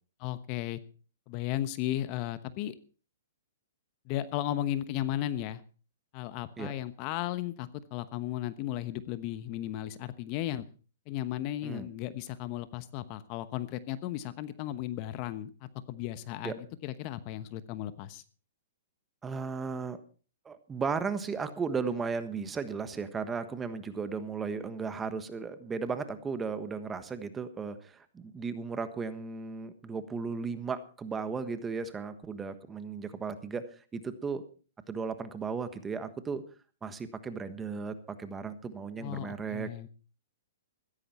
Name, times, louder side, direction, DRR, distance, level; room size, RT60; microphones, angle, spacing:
voice 1, 0.2-0.8 1.3-2.7 4.1-5.6 6.1-10.7 11.1-18.2 39.0-39.9, left 13 dB, 40° left, 14 dB, 1.0 m, -35 dB
voice 2, 19.2-20.0 20.4-34.4 34.9-36.4 36.8-39.7, right 5 dB, 15° right, 11 dB, 1.3 m, -35 dB
15.5 x 14.0 x 4.4 m, 0.38 s
hypercardioid pair, 140°, 0 cm